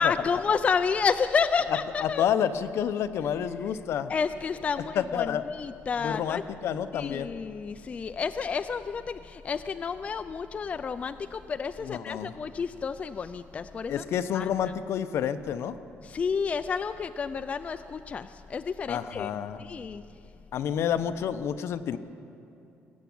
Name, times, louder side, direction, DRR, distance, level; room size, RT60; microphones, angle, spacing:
voice 1, 0.0-2.3 4.1-6.4 6.9-14.0 14.3-14.5 16.0-19.3 19.6-20.0, left 5 dB, 25° left, 10 dB, 0.3 m, -30 dB
voice 2, 1.7-4.1 5.0-5.4 6.0-7.3 11.8-12.3 13.9-15.8 18.9-19.6 20.5-22.0, left 9 dB, 65° left, 11 dB, 0.7 m, -29 dB
20.0 x 8.2 x 8.6 m, 2.8 s
cardioid pair, 160°, 5 cm